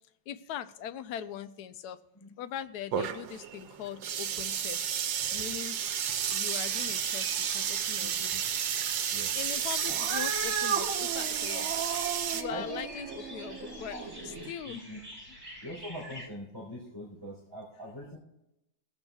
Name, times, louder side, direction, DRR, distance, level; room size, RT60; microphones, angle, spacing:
voice 1, 0.3-2.0 2.4-4.8 5.3-5.8 6.3-8.3 9.3-11.7 12.3-14.8 15.3-15.4, left 9 dB, 70° left, 11 dB, 1.1 m, -41 dB
sound 1, 2.9-12.4, right 9 dB, 75° right, 1.4 m, -32 dB
sound 2, 6.5-16.3, equal, 10° right, 4.3 m, -48 dB
voice 2, 8.0-8.4 9.1-9.3 12.5-12.8 13.6-14.0 14.6-15.0 15.6-18.2, equal, 10° left, -5 dB, 3.6 m, -42 dB
Cat, 9.9-14.5, right 6 dB, 55° right, 1.1 m, -36 dB
23.5 x 8.0 x 2.3 m, 0.89 s
omnidirectional pair, 2.0 m